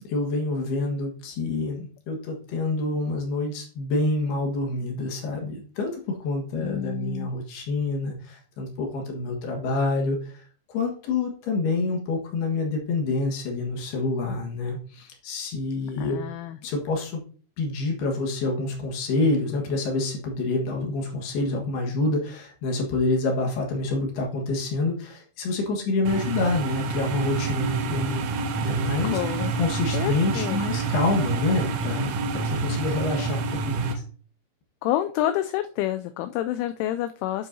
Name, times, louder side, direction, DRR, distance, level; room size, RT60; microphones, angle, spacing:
voice 1, 0.1-10.2 10.7-16.2 16.6-17.2 17.6-28.2 28.6-29.2 29.6-32.1 32.6-33.9, left 2 dB, 60° left, 1 dB, 3.2 m, -27 dB
voice 2, 6.5-7.3 16.0-16.6 29.0-29.5 29.9-30.6 34.8-37.5, left 13 dB, 85° left, 9 dB, 2.8 m, -28 dB
sound 1, 26.1-33.9, right 4 dB, 85° right, 3.8 m, -28 dB
10.5 x 7.5 x 2.7 m, 0.42 s
omnidirectional pair, 5.8 m